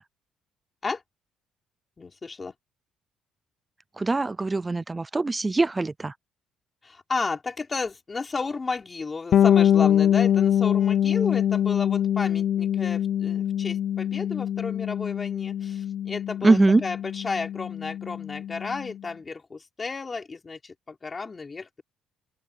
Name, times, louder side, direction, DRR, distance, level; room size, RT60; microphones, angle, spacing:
voice 1, 2.0-2.5 6.8-21.8, left 4 dB, 20° left, 3.5 m, -33 dB
voice 2, 4.0-6.1 16.4-16.8, right 3 dB, 15° right, 0.3 m, -22 dB
Bass guitar, 9.3-18.9, left 10 dB, 45° left, 0.6 m, -24 dB
open air
cardioid pair, 155°, 0 cm